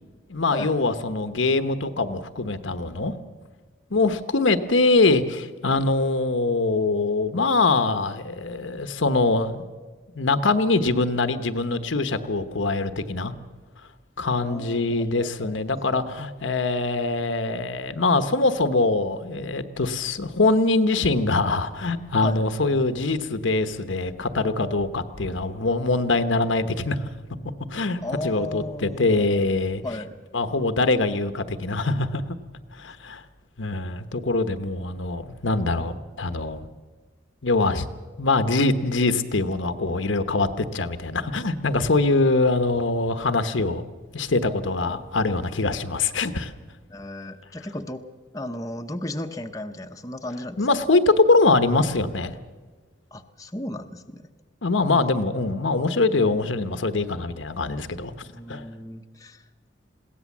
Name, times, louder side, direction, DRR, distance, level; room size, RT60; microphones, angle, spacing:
voice 1, 0.3-3.2 3.9-9.6 10.2-13.3 14.2-27.0 27.7-29.8 30.3-32.2 32.8-33.2 33.6-36.7 37.4-37.9 38.2-43.8 44.1-46.5 50.6-52.3 54.6-58.1 58.5-58.6, left 3 dB, 80° left, 10 dB, 1.1 m, -23 dB
voice 2, 14.4-16.1 22.2-22.4 28.0-29.5 29.8-30.1 44.8-45.0 46.9-48.0 48.3-50.7 53.1-54.3 54.8-55.1 58.2-59.4, left 1 dB, 20° left, 5 dB, 0.8 m, -35 dB
21.5 x 17.0 x 7.3 m, 1.4 s
head